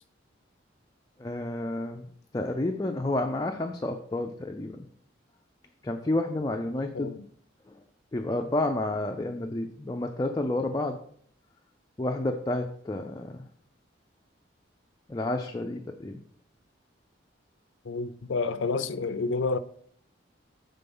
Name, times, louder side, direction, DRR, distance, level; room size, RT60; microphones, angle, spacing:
voice 1, 1.2-2.1 2.3-4.9 5.8-7.1 7.7-7.8 8.1-11.0 12.0-13.5 15.1-16.2, left 2 dB, 20° left, 0.4 m, -30 dB
voice 2, 17.9-19.6, left 4 dB, 75° left, 0.5 m, -29 dB
6.9 x 3.8 x 5.4 m
head